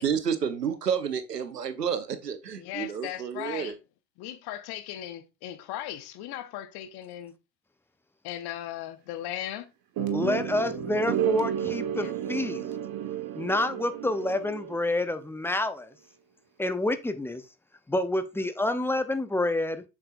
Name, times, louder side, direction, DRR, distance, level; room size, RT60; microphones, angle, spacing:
voice 1, 0.0-3.8, right 7 dB, 85° right, 0.8 m, -30 dB
voice 2, 2.6-3.7 4.2-7.3 8.2-9.6 12.0-12.1, left 12 dB, 55° left, 1.1 m, -37 dB
sound 1, 10.0-15.1, right 9 dB, 50° right, 1.3 m, -32 dB
voice 3, 10.1-12.6 13.4-15.9 16.6-17.4 17.9-19.8, left 1 dB, 5° left, 0.8 m, -28 dB
7.7 x 6.1 x 2.5 m
figure-of-eight pair, 60°, 47 cm